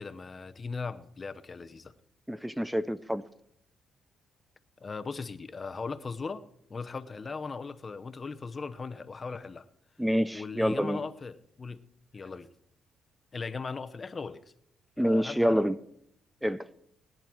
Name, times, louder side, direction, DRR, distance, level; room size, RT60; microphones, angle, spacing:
voice 1, 0.0-1.9 4.8-6.4 6.7-9.6 10.3-11.8 12.1-12.5 13.3-14.4 15.0-15.6, left 4 dB, 35° left, 0.9 m, -38 dB
voice 2, 2.3-3.3 10.0-11.1 15.0-15.8 16.4-16.7, equal, 5° right, 0.5 m, -27 dB
20.0 x 10.5 x 4.6 m
cardioid pair, 90°, 0 cm